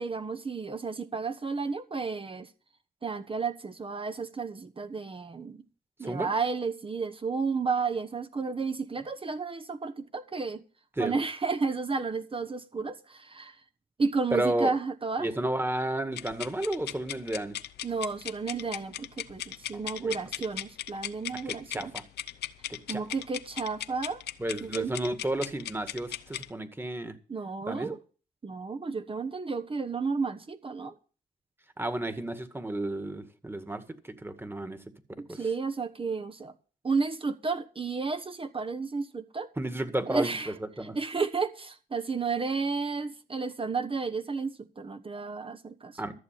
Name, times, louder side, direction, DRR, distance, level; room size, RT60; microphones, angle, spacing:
voice 1, 0.0-2.5 3.0-5.6 6.0-10.6 11.0-13.6 14.0-15.3 17.8-21.9 22.9-24.2 24.6-24.9 27.3-28.0 28.4-30.9 35.2-36.5 36.8-39.5 40.1-40.5 40.9-46.0, right 4 dB, 35° right, 1.1 m, -32 dB
voice 2, 14.3-14.8 15.2-17.6 20.0-20.2 21.5-22.0 22.7-23.0 24.4-27.2 27.7-27.9 31.8-34.8 35.3-35.5 39.6-41.0 46.0-46.1, right 1 dB, 15° right, 1.9 m, -32 dB
sound 1, 16.1-26.5, left 12 dB, 80° left, 0.6 m, -38 dB
13.5 x 6.9 x 7.5 m
cardioid pair, 65°, 17 cm